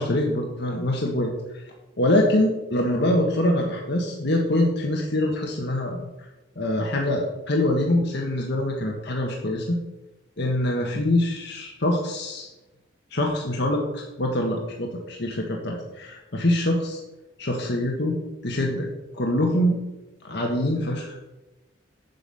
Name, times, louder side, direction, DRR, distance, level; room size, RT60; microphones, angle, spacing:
voice 1, 0.0-1.6 2.0-6.0 6.5-9.8 10.4-12.5 13.1-17.0 17.4-18.2 18.4-18.9 19.1-19.8 20.2-21.2, left 1 dB, 65° left, 0 dB, 1.5 m, -24 dB
8.2 x 8.0 x 5.5 m, 1.0 s
head